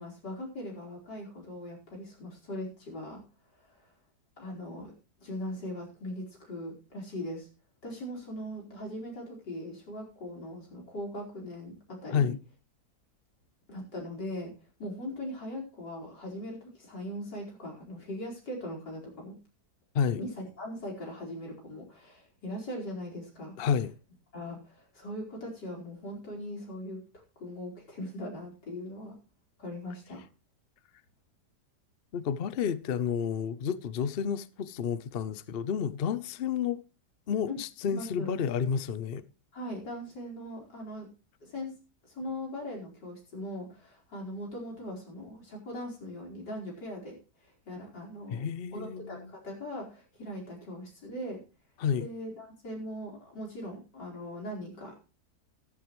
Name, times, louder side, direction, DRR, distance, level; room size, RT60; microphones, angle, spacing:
voice 1, 0.0-3.2 3.7-3.9 4.4-4.9 5.2-7.5 7.8-12.3 13.7-14.5 14.8-19.4 20.2-23.5 24.3-27.0 27.4-29.2 29.6-30.3 37.5-38.3 39.5-41.1 41.4-41.7 42.1-47.2 47.4-51.4 52.0-55.0, left 1 dB, 85° left, 5.3 m, -40 dB
voice 2, 23.6-23.9 32.1-36.8 37.3-39.2 48.3-49.3 51.8-52.1, left 7 dB, 55° left, 0.6 m, -30 dB
14.0 x 13.5 x 3.1 m
omnidirectional pair, 1.8 m